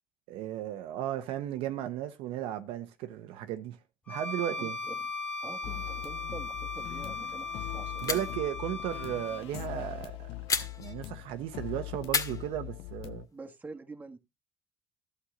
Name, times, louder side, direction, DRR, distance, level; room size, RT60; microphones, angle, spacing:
voice 1, 0.3-3.8 4.1-4.8 8.0-10.3 10.6-13.2, right 12 dB, 75° right, 1.0 m, -35 dB
Bowed string instrument, 4.1-9.5, left 3 dB, 10° left, 1.5 m, -38 dB
voice 2, 4.6-5.1 5.4-8.3 13.3-14.2, right 3 dB, 20° right, 1.6 m, -46 dB
sound 1, 5.6-13.3, left 17 dB, 70° left, 0.6 m, -42 dB
sound 2, 6.7-7.1 7.4-7.5 8.0-8.5 10.5-11.3 12.1-13.2, left 5 dB, 40° left, 1.8 m, -34 dB
11.5 x 8.0 x 3.9 m
supercardioid pair, 80°, 10 cm